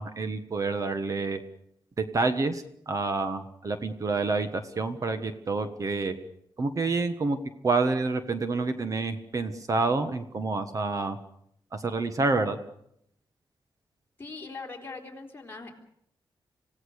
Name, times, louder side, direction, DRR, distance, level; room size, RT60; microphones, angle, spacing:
voice 1, 0.0-1.4 2.0-6.2 6.6-7.4 7.6-11.2 11.7-12.6, right 3 dB, 40° right, 9 dB, 1.5 m, -28 dB
voice 2, 14.2-15.7, left 3 dB, 25° left, 1 dB, 4.0 m, -41 dB
26.5 x 17.0 x 6.6 m, 0.72 s
wide cardioid pair, 155°, 9 cm